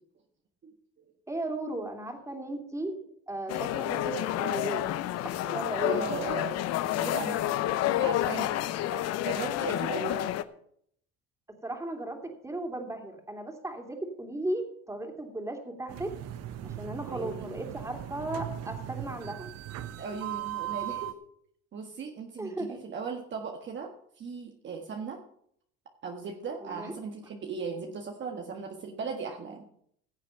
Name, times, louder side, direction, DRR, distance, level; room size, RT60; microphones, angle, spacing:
voice 1, 1.3-2.9 3.3-4.8 5.4-6.0 8.9-9.0 9.9-10.2 11.6-12.2 12.4-16.1 16.6-19.5 22.4-22.8 26.6-26.9, right 2 dB, 10° right, 3 dB, 3.0 m, -36 dB
sound 1, 3.5-10.4, left 13 dB, 55° left, 0.8 m, -29 dB
voice 2, 5.8-7.5 7.8-8.5 9.2-10.4 17.1-17.5 20.0-21.1 21.7-25.2 26.0-29.7, right 5 dB, 40° right, 2 dB, 1.6 m, -38 dB
sound 2, 15.9-21.1, right 12 dB, 55° right, 1.1 m, -38 dB
16.0 x 7.4 x 5.8 m, 0.68 s
supercardioid pair, 90°, 30 cm